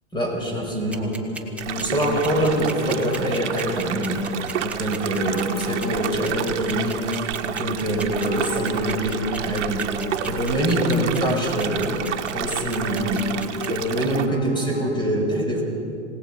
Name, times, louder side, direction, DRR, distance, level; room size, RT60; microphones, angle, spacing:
voice 1, 0.1-1.1 1.7-4.2 4.6-7.0 7.4-9.8 10.2-12.1 12.3-13.2 13.7-15.6, right 1 dB, 10° left, 0 dB, 5.7 m, -24 dB
sound 1, 0.9-15.0, left 4 dB, 60° left, 3.6 m, -37 dB
sound 2, 0.9-13.7, right 3 dB, 5° right, 2.2 m, -35 dB
sound 3, 1.6-14.3, right 9 dB, 65° right, 1.4 m, -30 dB
27.5 x 18.5 x 5.5 m, 2.5 s
hypercardioid pair, 100°, 37 cm